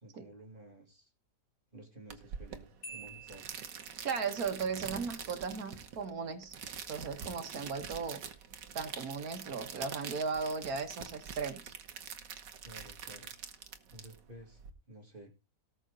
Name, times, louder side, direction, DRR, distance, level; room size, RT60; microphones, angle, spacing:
voice 1, 0.0-1.1 1.7-3.5 12.6-13.3 13.9-14.6 14.9-15.3, right 1 dB, 30° right, 2 dB, 2.5 m, -53 dB
sound 1, 2.1-14.7, right 7 dB, 85° right, 1.8 m, -45 dB
Marimba xylophone, 2.8-4.3, right 3 dB, 90° left, 2.7 m, -49 dB
voice 2, 4.0-6.5 6.9-8.2 8.8-11.7, right 5 dB, 60° right, 7 dB, 2.0 m, -36 dB
18.0 x 6.3 x 4.0 m, 0.29 s
omnidirectional pair, 1.8 m